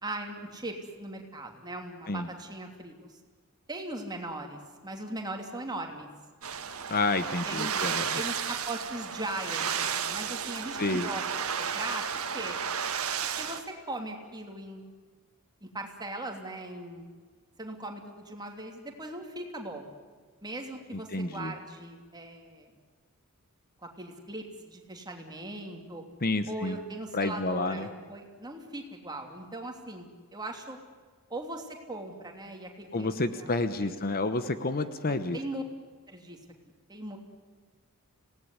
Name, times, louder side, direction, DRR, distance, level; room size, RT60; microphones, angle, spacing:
voice 1, 0.0-3.2 3.7-6.1 7.4-7.8 8.1-11.2 11.6-12.6 13.4-14.8 15.6-17.1 17.6-19.9 20.4-22.7 23.8-26.0 26.5-30.8 31.3-33.9 35.3-35.6 36.1-36.4 36.9-37.2, right 2 dB, 20° right, 2 dB, 2.9 m, -39 dB
sound 1, 6.4-13.6, right 7 dB, 70° right, 1.7 m, -33 dB
voice 2, 6.9-8.2 10.8-11.1 21.1-21.5 26.2-26.8 27.1-27.9 32.9-35.4, left 2 dB, 40° left, 11 dB, 1.0 m, -29 dB
26.0 x 18.0 x 9.8 m, 1.5 s
head